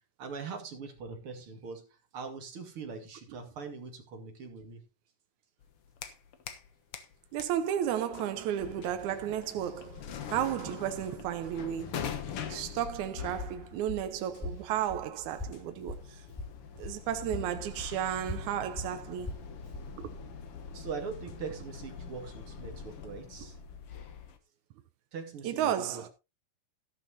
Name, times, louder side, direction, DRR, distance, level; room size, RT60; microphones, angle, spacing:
voice 1, 0.2-1.9 2.1-4.8 20.7-23.6 25.1-26.0, right 5 dB, 50° right, 2.8 m, -42 dB
sound 1, 5.6-6.7 6.9-24.4, left 7 dB, 60° left, 1.9 m, -44 dB
voice 2, 7.3-12.1 12.5-16.2 16.8-19.3 20.0-20.1 25.4-26.1, right 10 dB, 80° right, 2.2 m, -33 dB
Walk footsteps, 12.3-17.0 17.3-19.9, left 2 dB, 5° left, 5.6 m, -42 dB
12.5 x 12.0 x 2.8 m
omnidirectional pair, 3.4 m